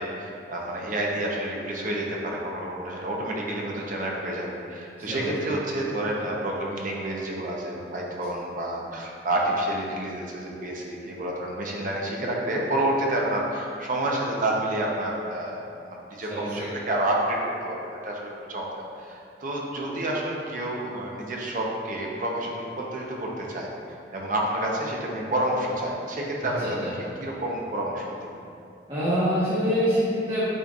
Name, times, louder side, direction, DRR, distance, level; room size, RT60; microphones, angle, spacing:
voice 1, 0.0-15.6 15.9-17.4 17.6-17.8 18.0-18.7 19.0-23.7 24.1-26.6 27.2-28.3, right 1 dB, 50° right, -2 dB, 0.9 m, -29 dB
voice 2, 5.0-5.5 16.3-16.7 26.4-26.9 28.9-30.5, equal, 30° right, -12 dB, 1.4 m, -26 dB
8.8 x 4.5 x 2.5 m, 2.6 s
head